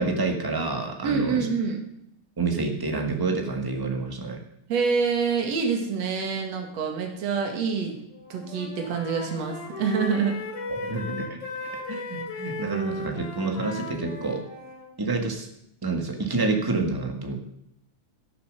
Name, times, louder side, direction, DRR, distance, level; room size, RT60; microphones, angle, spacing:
voice 1, 0.0-1.5 2.4-4.4 10.7-14.4 15.0-15.5 15.8-17.4, right 3 dB, 15° right, 4 dB, 0.8 m, -28 dB
voice 2, 1.0-1.8 4.7-8.0 8.3-10.4 10.9-11.0, right 5 dB, 60° right, 2 dB, 3.1 m, -26 dB
Wind instrument woodwind instrument, 8.1-14.9, left 3 dB, 65° left, 4.0 m, -37 dB
17.0 x 7.1 x 6.4 m, 0.76 s
omnidirectional pair, 3.5 m